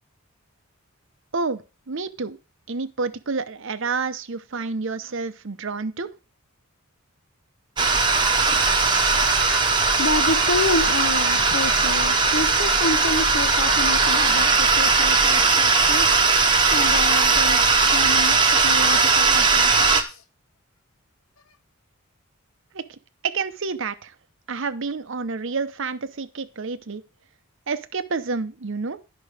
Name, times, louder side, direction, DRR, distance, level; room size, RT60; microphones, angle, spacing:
voice 1, 1.3-2.4 2.7-6.1 22.7-22.8 23.2-24.1 24.5-27.0 27.7-29.0, right 4 dB, 60° right, 0.8 m, -29 dB
sound 1, 7.8-20.0, right 4 dB, 20° right, 1.0 m, -19 dB
voice 2, 10.0-16.1 16.7-20.2, left 3 dB, 70° left, 0.9 m, -29 dB
10.5 x 6.1 x 4.9 m
head